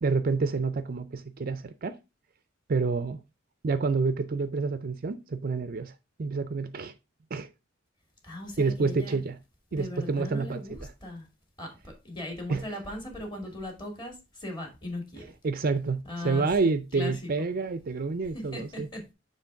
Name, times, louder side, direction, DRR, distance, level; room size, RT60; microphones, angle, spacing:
voice 1, 0.0-2.0 2.7-3.2 3.6-5.9 6.2-6.9 7.3-7.5 8.6-9.4 9.7-10.9 12.5-12.8 15.2-18.9, right 4 dB, 50° right, 0.5 m, -28 dB
voice 2, 8.2-9.2 9.7-11.2 11.6-14.1 14.4-15.2 16.1-17.1 18.5-19.0, left 1 dB, 25° left, 2.0 m, -38 dB
6.8 x 3.3 x 4.5 m
head